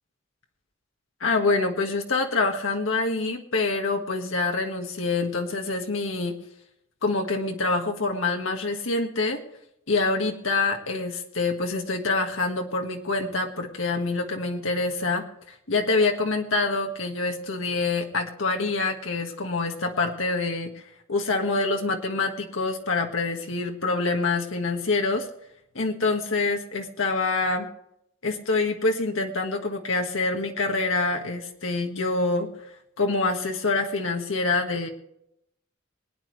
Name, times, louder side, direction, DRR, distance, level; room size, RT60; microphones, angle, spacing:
voice 1, 1.2-6.3 7.0-9.4 9.9-15.2 15.7-20.7 21.1-25.3 25.7-27.7 28.2-32.5 33.0-34.9, left 3 dB, 75° left, 3 dB, 1.6 m, -26 dB
22.0 x 9.9 x 3.3 m, 0.77 s
head